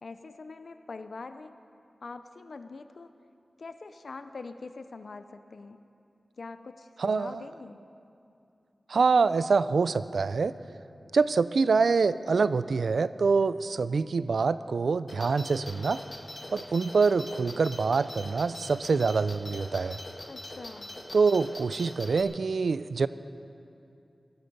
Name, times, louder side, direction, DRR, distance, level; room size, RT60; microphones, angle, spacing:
voice 1, 0.0-1.6 2.0-3.1 3.6-5.8 6.4-7.8 20.3-21.0, left 3 dB, 70° left, 10 dB, 0.6 m, -43 dB
voice 2, 7.0-7.4 8.9-10.5 11.1-16.0 16.5-20.0 21.1-23.1, right 4 dB, 85° right, 15 dB, 0.4 m, -25 dB
sound 1, 15.1-22.2, left 1 dB, 45° left, 1.9 m, -43 dB
18.0 x 13.0 x 5.3 m, 2.6 s
wide cardioid pair, 80°, 0 cm